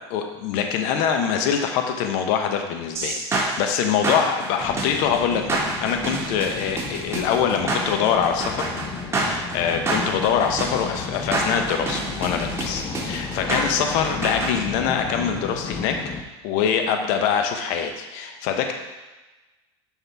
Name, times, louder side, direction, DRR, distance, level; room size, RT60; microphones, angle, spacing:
voice 1, 0.0-8.7 9.2-16.1 16.4-18.7, left 7 dB, 60° left, 5 dB, 1.0 m, -24 dB
sound 1, 2.9-14.5, right 2 dB, 20° right, 1.8 m, -28 dB
sound 2, 4.6-16.2, left 4 dB, 30° left, 0.9 m, -33 dB
7.2 x 5.7 x 3.5 m, 1.1 s
hypercardioid pair, 95°, 15 cm